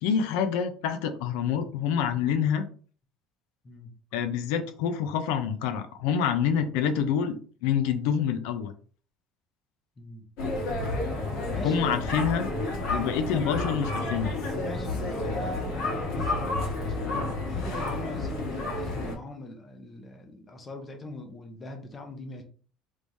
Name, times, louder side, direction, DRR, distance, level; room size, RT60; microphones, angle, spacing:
voice 1, 0.0-2.6 4.1-7.3 7.6-8.7 11.6-12.5 12.9-14.3, left 7 dB, 85° left, 9 dB, 0.5 m, -27 dB
voice 2, 10.0-10.3 11.5-12.0 12.6-13.6 14.5-22.4, left 2 dB, 20° left, 4 dB, 0.7 m, -42 dB
sound 1, 10.4-19.1, left 2 dB, 70° left, 1.4 m, -30 dB
3.5 x 3.1 x 2.6 m, 0.41 s
cardioid pair, 160°, 0 cm